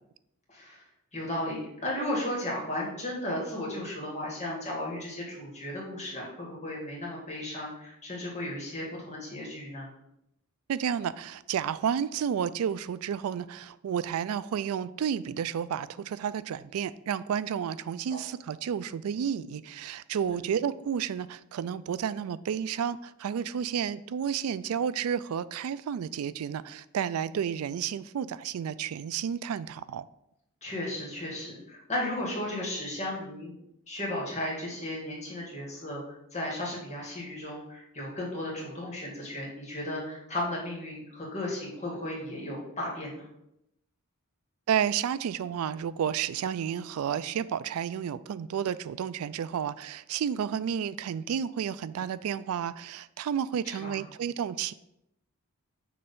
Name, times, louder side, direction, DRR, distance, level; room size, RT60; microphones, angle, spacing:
voice 1, 0.5-0.8 1.1-9.9 18.1-18.2 20.2-20.5 30.6-33.5 33.9-43.3 53.6-54.0, left 1 dB, 30° left, 2.0 m, -35 dB
voice 2, 10.7-30.1 44.7-54.7, right 8 dB, 70° right, 0.3 m, -31 dB
6.8 x 3.2 x 5.4 m
head